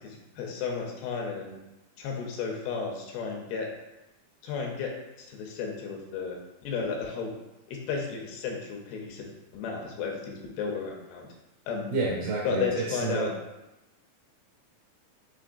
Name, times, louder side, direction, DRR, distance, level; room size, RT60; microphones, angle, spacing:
voice 1, 0.0-1.6 2.0-3.7 4.4-4.9 5.2-7.3 7.7-9.3 9.5-11.3 11.7-11.9 12.4-13.3, left 5 dB, 85° left, 0 dB, 2.6 m, -33 dB
voice 2, 11.9-13.3, right 3 dB, 65° right, -6 dB, 2.0 m, -29 dB
6.0 x 2.9 x 2.5 m, 0.99 s
omnidirectional pair, 4.4 m